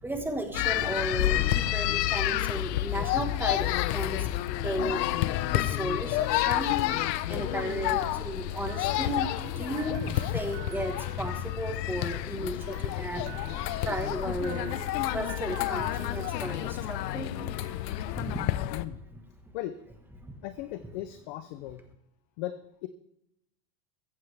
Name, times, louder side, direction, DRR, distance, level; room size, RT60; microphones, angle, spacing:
voice 1, 0.0-6.7 7.0-17.3 17.8-17.9 18.2-18.7 20.2-20.3, right 1 dB, 5° right, 5 dB, 1.4 m, -35 dB
sound 1, 0.5-18.8, left 14 dB, 75° left, 0.9 m, -29 dB
sound 2, 8.7-12.2 12.6-18.6, right 11 dB, 30° right, 1.2 m, -49 dB
voice 2, 18.7-19.0 19.5-19.8 20.4-21.8 22.4-22.9, left 13 dB, 30° left, 10 dB, 0.3 m, -37 dB
15.0 x 15.0 x 3.4 m, 0.82 s
supercardioid pair, 155°, 50 cm